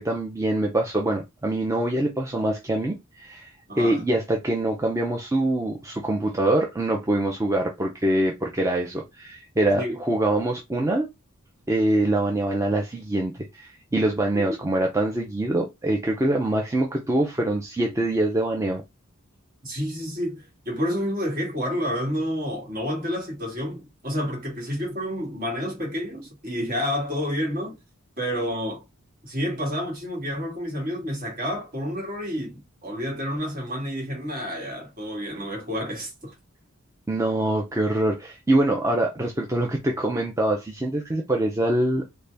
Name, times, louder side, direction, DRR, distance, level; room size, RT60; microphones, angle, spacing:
voice 1, 0.0-3.5 3.8-11.1 11.7-18.8 37.1-42.0, right 1 dB, 15° right, 0.5 m, -24 dB
voice 2, 3.7-4.0 9.8-10.0 14.3-14.4 19.6-27.8 28.2-28.8 29.2-36.3, equal, 40° right, 1.6 m, -29 dB
3.9 x 2.2 x 3.3 m
head